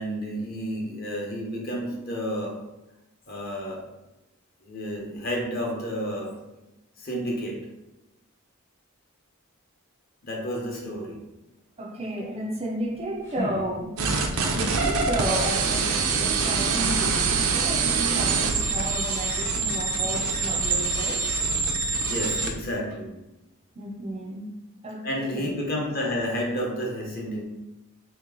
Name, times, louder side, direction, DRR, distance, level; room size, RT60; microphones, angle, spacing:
voice 1, 0.0-2.6 3.3-3.9 4.6-6.5 7.0-7.6 10.2-11.2 22.0-23.2 25.0-27.4, equal, 45° left, -1 dB, 0.8 m, -31 dB
voice 2, 11.8-14.0 14.3-21.2 23.8-25.5, right 1 dB, 30° right, 1 dB, 0.4 m, -32 dB
sound 1, 12.7-14.4, left 2 dB, 10° left, 0.6 m, -38 dB
sound 2, 14.0-22.5, right 4 dB, 80° right, 0.5 m, -25 dB
3.3 x 2.9 x 3.7 m, 0.96 s
head